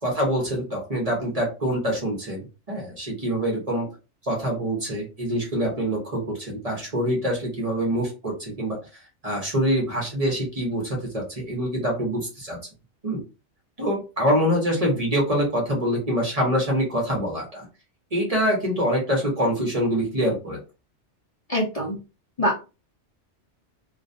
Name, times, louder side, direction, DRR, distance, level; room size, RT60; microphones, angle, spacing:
voice 1, 0.0-3.9 4.2-8.8 9.2-12.6 13.0-13.2 13.8-17.6 18.1-20.6, equal, 35° right, -1 dB, 0.8 m, -25 dB
voice 2, 21.5-22.0 22.4-22.6, equal, 40° left, -4 dB, 0.6 m, -24 dB
2.4 x 2.1 x 2.5 m, 0.30 s
omnidirectional pair, 1.2 m